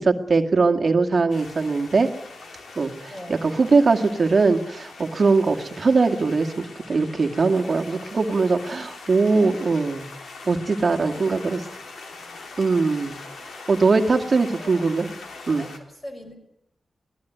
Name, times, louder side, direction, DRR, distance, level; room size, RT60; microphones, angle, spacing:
voice 1, 0.0-2.1 2.8-2.9 3.3-10.1 10.4-11.6 12.6-13.2 13.7-15.1 15.5-15.7, right 4 dB, 40° right, 5 dB, 2.1 m, -21 dB
sound 1, 1.3-15.8, left 3 dB, 75° left, 3.4 m, -42 dB
voice 2, 3.1-3.4 8.6-8.8 10.9-11.5 12.2-12.4 14.2-15.0 15.5-16.3, left 1 dB, 25° left, 5 dB, 5.6 m, -41 dB
23.5 x 18.5 x 9.4 m, 0.75 s
wide cardioid pair, 170°, 0 cm